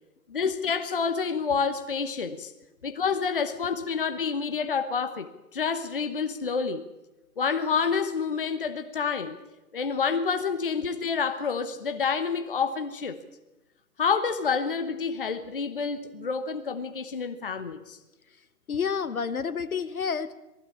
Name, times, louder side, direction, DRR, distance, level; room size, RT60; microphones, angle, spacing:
voice 1, 0.3-2.5 2.8-6.8 7.4-9.4 9.7-13.2 14.0-18.0, left 5 dB, 35° left, 9 dB, 1.0 m, -28 dB
voice 2, 18.7-20.3, left 6 dB, 60° left, 15 dB, 1.2 m, -29 dB
20.0 x 15.0 x 8.5 m, 1.0 s
hypercardioid pair, 170°, 48 cm